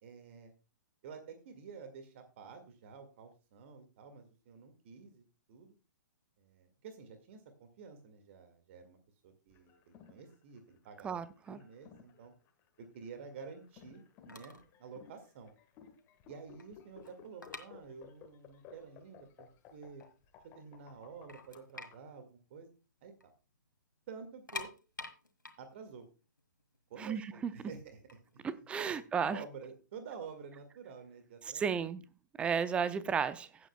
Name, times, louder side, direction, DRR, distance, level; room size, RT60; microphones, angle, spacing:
voice 1, 0.0-0.5 1.0-5.7 6.4-9.0 9.2-12.3 12.8-15.5 16.3-20.0 20.4-22.7 23.0-23.1 24.1-24.7 25.6-26.1 26.9-29.0 29.3-31.9, right 5 dB, 40° right, 2.0 m, -50 dB
sound 1, 9.5-21.9, left 8 dB, 25° left, 1.4 m, -57 dB
voice 2, 11.0-11.6 27.0-27.5 28.4-29.4 31.5-32.0 32.4-33.5, right 6 dB, 10° right, 0.6 m, -33 dB
sound 2, 14.3-14.7 15.0-15.2 15.8-15.9 16.1-18.4 18.7-18.8 19.4-19.5 19.8-20.6 20.9-21.0 21.3-23.3 23.6-23.7 24.3-27.2 27.9-29.6, left 3 dB, 80° left, 1.7 m, -48 dB
16.0 x 8.4 x 2.3 m
figure-of-eight pair, 120°, 10 cm